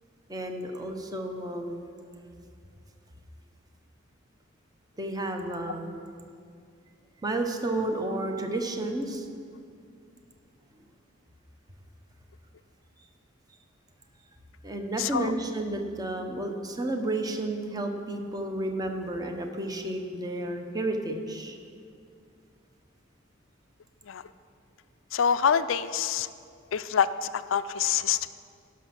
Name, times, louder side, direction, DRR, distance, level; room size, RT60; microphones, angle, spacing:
voice 1, 0.3-1.9 5.0-6.0 7.2-9.3 14.6-21.6, right 1 dB, 20° right, 4 dB, 0.9 m, -31 dB
voice 2, 15.0-15.3 24.0-24.2 25.1-26.3 26.7-28.3, left 7 dB, 70° left, 13 dB, 0.4 m, -26 dB
16.5 x 6.3 x 5.9 m, 2.3 s
head